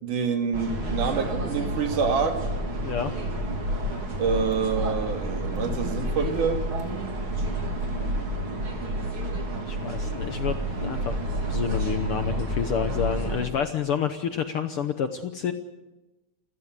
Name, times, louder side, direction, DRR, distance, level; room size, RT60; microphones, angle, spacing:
voice 1, 0.0-2.4 4.2-6.6, right 5 dB, 80° right, 6 dB, 3.7 m, -26 dB
sound 1, 0.5-13.5, right 1 dB, 40° right, 3.7 m, -29 dB
Motor vehicle (road), 3.1-4.7 5.0-7.1 7.7-8.2, equal, 20° right, 4.3 m, -49 dB
voice 2, 8.0-8.4 9.7-11.2 11.5-15.5, left 8 dB, 65° left, 9 dB, 1.4 m, -29 dB
29.0 x 16.0 x 8.1 m, 1.1 s
omnidirectional pair, 3.6 m